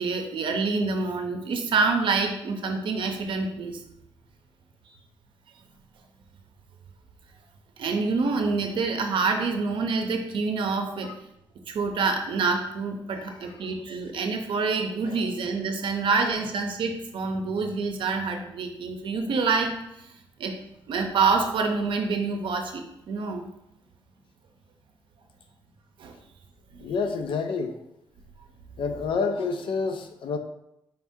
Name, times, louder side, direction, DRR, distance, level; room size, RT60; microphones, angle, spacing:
voice 1, 0.0-3.8 4.9-5.0 7.8-11.1 11.7-20.1 20.4-20.5 20.9-23.5 26.0-26.2 26.7-26.9, right 4 dB, 70° right, 4 dB, 0.6 m, -27 dB
voice 2, 26.8-27.8 28.8-30.4, left 4 dB, 75° left, 7 dB, 0.5 m, -28 dB
4.6 x 2.7 x 3.5 m, 0.84 s
cardioid pair, 120°, 9 cm